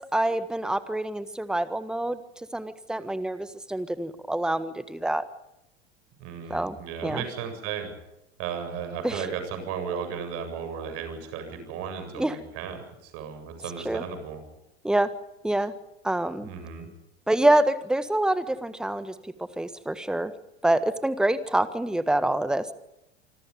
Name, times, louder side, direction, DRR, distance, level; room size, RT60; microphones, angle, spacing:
voice 1, 0.0-2.2 2.5-5.2 6.5-6.7 7.0-7.2 9.0-9.2 12.1-12.4 13.8-14.0 14.8-15.1 15.4-15.7 16.0-16.5 17.3-19.1 19.6-20.3 20.6-22.7, right 1 dB, ahead, 14 dB, 1.5 m, -26 dB
voice 2, 6.2-7.9 8.4-14.4 16.4-16.9, right 7 dB, 45° right, 8 dB, 7.8 m, -35 dB
27.0 x 25.5 x 5.4 m, 0.86 s
figure-of-eight pair, 85°, 33 cm